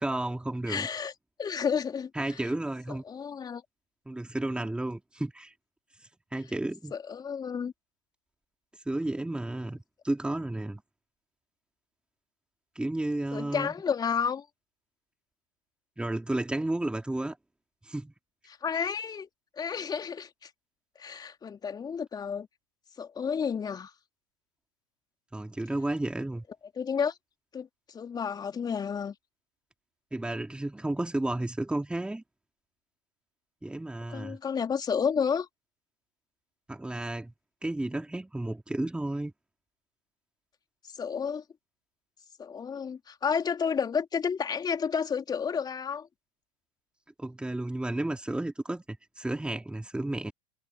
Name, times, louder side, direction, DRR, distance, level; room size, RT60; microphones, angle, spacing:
voice 1, 0.0-0.9 2.2-3.0 4.1-5.5 6.3-6.9 8.9-9.8 10.0-10.8 12.8-13.7 16.0-17.4 17.9-18.1 25.3-26.4 30.1-32.2 33.6-34.4 36.7-37.3 37.6-39.3 47.2-50.3, right 1 dB, 5° right, 4.0 m, -32 dB
voice 2, 0.7-1.1 1.4-2.4 2.9-3.6 6.9-7.7 13.3-14.4 18.6-19.3 19.6-20.5 21.0-22.5 23.0-23.9 26.8-27.1 27.5-29.1 34.1-35.5 40.9-41.4 42.4-46.1, left 6 dB, 20° left, 3.3 m, -31 dB
figure-of-eight pair, 85°, 18 cm